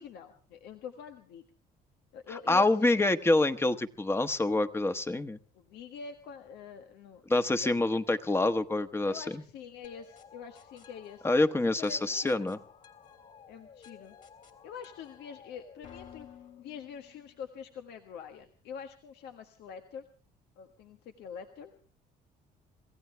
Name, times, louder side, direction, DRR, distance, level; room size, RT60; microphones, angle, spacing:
voice 1, 0.0-1.4 2.1-3.0 5.6-7.2 9.0-11.3 11.6-12.5 13.5-14.1 14.6-16.3 16.6-20.0 20.6-21.7, left 7 dB, 80° left, 5 dB, 1.6 m, -45 dB
voice 2, 2.5-5.4 7.3-9.4 11.2-12.6, left 2 dB, 15° left, 10 dB, 1.2 m, -26 dB
sound 1, 9.8-17.6, left 7 dB, 50° left, 3.5 m, -54 dB
27.0 x 16.0 x 3.3 m, 0.40 s
cardioid pair, 110°, 17 cm